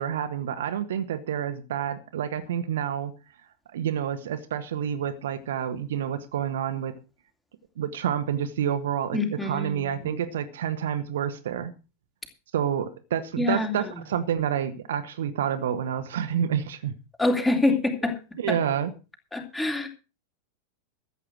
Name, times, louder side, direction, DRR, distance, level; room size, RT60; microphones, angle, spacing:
voice 1, 0.0-3.1 3.7-6.9 7.8-11.7 12.5-16.9 18.4-18.9, right 9 dB, 60° right, 1.3 m, -28 dB
voice 2, 9.1-10.2 13.4-13.8 17.2-18.2 18.5-18.6 19.3-19.9, left 2 dB, 10° left, 3.0 m, -26 dB
14.0 x 8.6 x 6.2 m
figure-of-eight pair, 90°, 0 cm